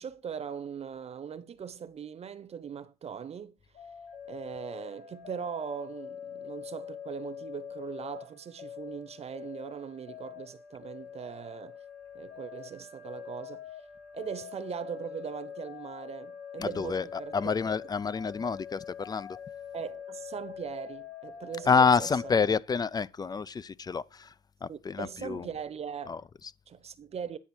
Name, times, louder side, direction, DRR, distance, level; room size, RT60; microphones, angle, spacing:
voice 1, 0.0-3.5 4.3-11.8 12.1-13.7 14.1-17.5 19.7-22.3 24.7-26.2 26.7-27.4, right 7 dB, 40° right, 0.9 m, -40 dB
sound 1, 3.7-22.4, left 8 dB, 80° left, 6.0 m, -44 dB
voice 2, 16.6-19.3 21.7-24.3 24.6-25.5 26.1-26.5, left 5 dB, 25° left, 0.4 m, -28 dB
9.8 x 5.4 x 4.3 m
cardioid pair, 110°, 17 cm